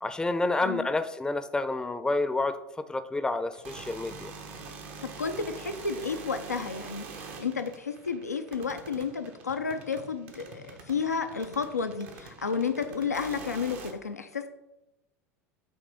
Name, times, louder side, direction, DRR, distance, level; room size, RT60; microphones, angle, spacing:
voice 1, 0.0-4.3, left 2 dB, 10° left, 11 dB, 0.5 m, -29 dB
sound 1, 3.5-13.9, right 4 dB, 60° right, 1.1 m, -45 dB
voice 2, 5.0-14.5, left 5 dB, 90° left, 7 dB, 0.4 m, -32 dB
8.5 x 3.3 x 5.1 m, 0.95 s
figure-of-eight pair, 80°, 8 cm